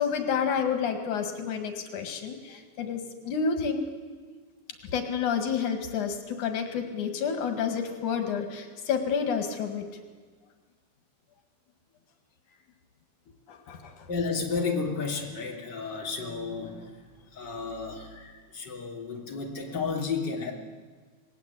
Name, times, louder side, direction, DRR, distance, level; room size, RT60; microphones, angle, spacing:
voice 1, 0.0-3.8 4.8-9.9 13.5-14.1, left 6 dB, 85° left, 6 dB, 3.4 m, -29 dB
voice 2, 14.1-20.5, left 4 dB, 35° left, 0 dB, 3.6 m, -32 dB
27.5 x 19.5 x 8.4 m, 1.5 s
omnidirectional pair, 3.4 m